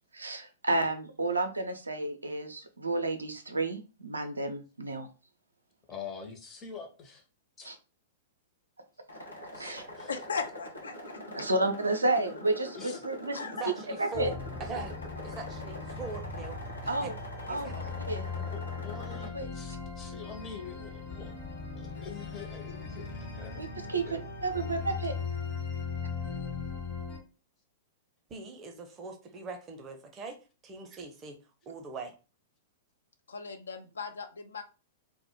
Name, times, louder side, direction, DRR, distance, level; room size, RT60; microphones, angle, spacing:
voice 1, 0.1-5.1 7.6-7.8 9.6-9.8 11.3-13.4 14.0-14.3 16.9-17.1 17.5-17.7 18.1-18.3 19.3-19.5 23.6-25.1, right 2 dB, 75° right, 6 dB, 0.4 m, -31 dB
voice 2, 5.9-7.2 7.6-7.7 9.5-10.1 12.7-13.1 18.4-21.4 21.7-24.2, left 5 dB, 25° left, 3 dB, 0.6 m, -45 dB
sound 1, 9.1-19.3, left 1 dB, 90° left, 0.8 m, -44 dB
voice 3, 10.1-11.5 13.3-13.6 33.3-34.6, left 5 dB, 70° left, 7 dB, 0.3 m, -38 dB
voice 4, 13.6-15.0 15.2-17.1 17.5-18.0 28.3-31.4 31.7-32.1, right 3 dB, 25° right, 4 dB, 0.5 m, -42 dB
sound 2, 14.1-27.2, left 5 dB, 45° left, 1.0 m, -38 dB
2.1 x 2.0 x 2.9 m, 0.32 s
figure-of-eight pair, 100°, 0 cm